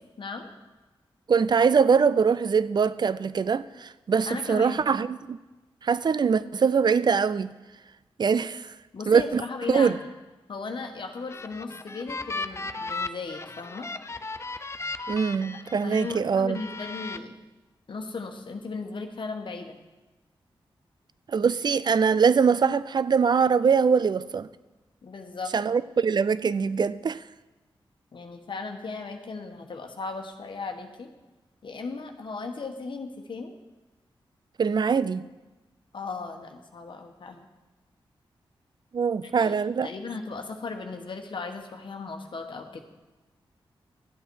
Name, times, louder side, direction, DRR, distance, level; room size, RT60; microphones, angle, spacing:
voice 1, 0.2-0.5 4.3-4.8 8.9-10.1 10.5-13.9 15.8-17.3 17.9-19.8 25.0-25.5 28.1-31.1 31.6-33.6 35.9-37.4 39.2-39.5 39.8-42.8, left 4 dB, 60° left, 1.2 m, -36 dB
voice 2, 1.3-5.4 5.8-7.5 8.2-8.7 9.1-9.4 9.7-10.0 15.1-16.6 21.3-24.5 25.5-27.2 34.6-35.3 38.9-39.9, right 6 dB, 50° right, 0.4 m, -23 dB
sound 1, 11.1-16.1 16.6-17.2, left 3 dB, 30° left, 0.5 m, -36 dB
12.0 x 8.0 x 4.6 m
cardioid pair, 60°, 9 cm